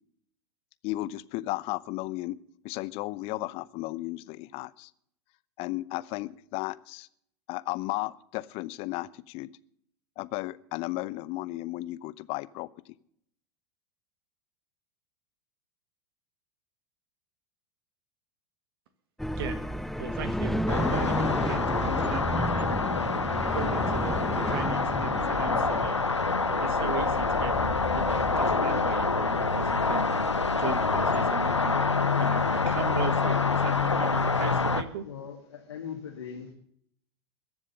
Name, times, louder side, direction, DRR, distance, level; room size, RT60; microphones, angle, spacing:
voice 1, 0.8-2.4 2.6-4.9 5.6-7.1 7.5-9.5 10.2-12.9, left 19 dB, 40° left, 17 dB, 0.8 m, -34 dB
sound 1, 19.2-31.7, left 1 dB, ahead, 0.5 m, -33 dB
voice 2, 20.0-22.7 23.3-26.0 26.5-27.6 27.9-31.8 32.2-35.1, right 8 dB, 55° right, 12 dB, 1.4 m, -38 dB
sound 2, 20.7-34.8, left 4 dB, 90° left, 0.8 m, -26 dB
voice 3, 35.0-36.5, left 7 dB, 70° left, 2 dB, 2.1 m, -40 dB
22.0 x 7.3 x 6.6 m, 0.67 s
figure-of-eight pair, 90°, 14 cm